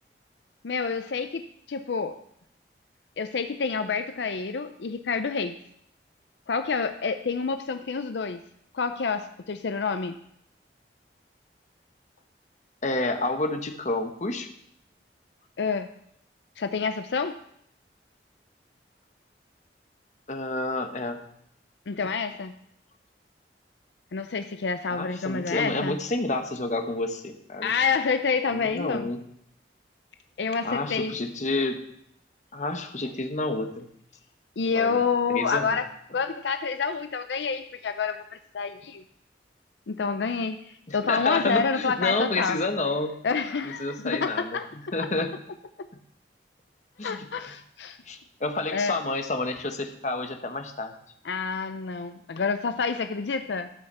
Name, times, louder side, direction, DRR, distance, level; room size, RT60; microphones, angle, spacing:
voice 1, 0.6-2.2 3.2-5.6 6.5-8.4 8.7-10.2 15.6-15.9 16.6-17.4 21.9-22.5 24.1-26.0 27.6-29.1 30.4-31.1 34.6-35.9 36.1-39.0 39.9-42.6 43.2-44.7 45.0-45.1 47.0-48.0 48.7-49.0 51.2-53.7, left 5 dB, 80° left, 9 dB, 0.5 m, -28 dB
voice 2, 12.8-14.5 20.3-21.2 24.9-27.7 28.5-29.2 30.6-31.8 32.5-33.9 34.7-35.0 35.3-35.8 40.9-43.1 43.6-44.6 44.9-45.3 47.0-47.2 48.1-50.9, left 2 dB, 40° left, 6 dB, 1.0 m, -29 dB
13.0 x 5.7 x 6.7 m, 0.73 s
head